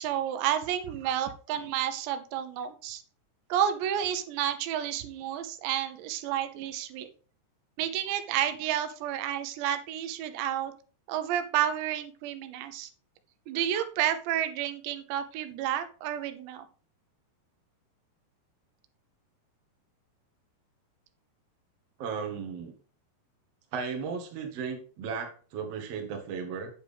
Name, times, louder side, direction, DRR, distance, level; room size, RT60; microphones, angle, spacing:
voice 1, 0.0-3.0 3.5-7.1 7.8-10.7 11.1-12.9 13.5-16.7, right 10 dB, 85° right, 9 dB, 3.0 m, -30 dB
voice 2, 22.0-22.7 23.7-26.7, right 6 dB, 55° right, 3 dB, 2.0 m, -35 dB
8.8 x 7.5 x 3.4 m, 0.39 s
omnidirectional pair, 5.0 m